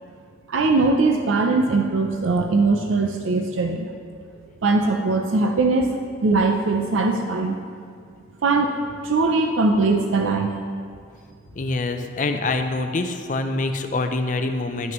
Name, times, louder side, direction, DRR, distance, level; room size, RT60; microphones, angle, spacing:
voice 1, 0.5-3.9 4.6-7.5 8.4-8.7 9.0-10.5, right 3 dB, 85° right, 3 dB, 0.5 m, -20 dB
voice 2, 11.6-14.9, left 2 dB, 40° left, 7 dB, 0.4 m, -25 dB
10.5 x 6.0 x 3.0 m, 2.2 s
head